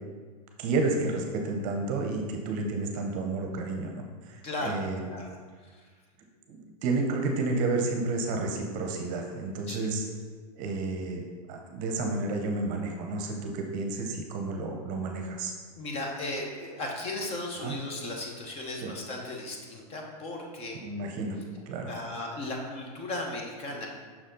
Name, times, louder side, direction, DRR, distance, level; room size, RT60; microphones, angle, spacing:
voice 1, 0.6-5.2 6.5-10.0 10.5-11.2 11.5-15.5 17.6-17.7 18.8-18.9 20.8-21.4 21.7-21.9, right 3 dB, 40° right, 3 dB, 0.8 m, -31 dB
voice 2, 4.4-5.4 5.6-5.8 9.7-9.8 15.8-20.8 21.9-23.9, left 2 dB, 30° left, 0 dB, 0.9 m, -36 dB
5.9 x 4.1 x 3.9 m, 1.5 s
hypercardioid pair, 130°, 21 cm